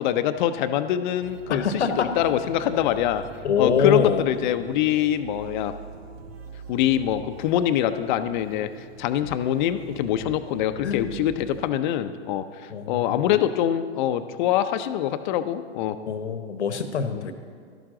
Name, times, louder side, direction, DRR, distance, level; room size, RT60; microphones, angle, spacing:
voice 1, 0.0-3.2 3.6-5.7 6.7-8.7 9.0-16.0, left 11 dB, 45° left, 10 dB, 0.7 m, -24 dB
sound 1, 1.2-11.7, right 3 dB, 65° right, 1.5 m, -44 dB
voice 2, 1.5-2.1 3.4-4.2 10.8-11.1 12.7-13.2 16.1-17.3, left 6 dB, 80° left, 8 dB, 1.1 m, -24 dB
12.5 x 12.0 x 3.8 m, 2.1 s
hypercardioid pair, 120°, 33 cm